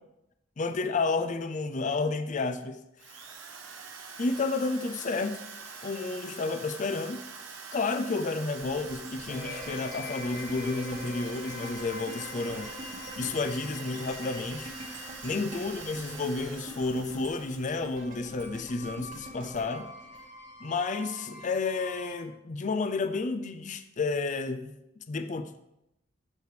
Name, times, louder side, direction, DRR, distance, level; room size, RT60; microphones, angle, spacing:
voice 1, 0.6-2.8 4.2-5.4 5.8-7.2 7.7-12.7 13.2-14.7 15.2-19.9 20.6-24.7 25.1-25.6, left 3 dB, 40° left, 0.5 m, -31 dB
Drill, 3.0-18.2, right 5 dB, 75° right, 1.2 m, -45 dB
sound 1, 8.6-20.8 21.2-21.3, equal, 45° right, 1.8 m, -45 dB
sound 2, 9.3-22.2, left 2 dB, 55° left, 1.2 m, -45 dB
14.5 x 4.9 x 3.3 m
head